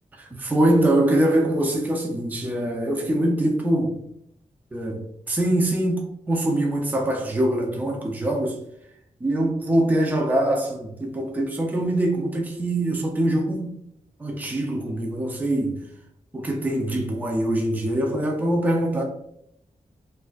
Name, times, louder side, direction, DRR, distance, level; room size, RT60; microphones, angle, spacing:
voice 1, 0.2-4.0 4.7-8.6 9.2-13.8 14.2-15.8 16.3-19.0, right 1 dB, 10° right, 0.4 m, -23 dB
4.1 x 2.5 x 2.2 m
wide cardioid pair, 175°, 14 cm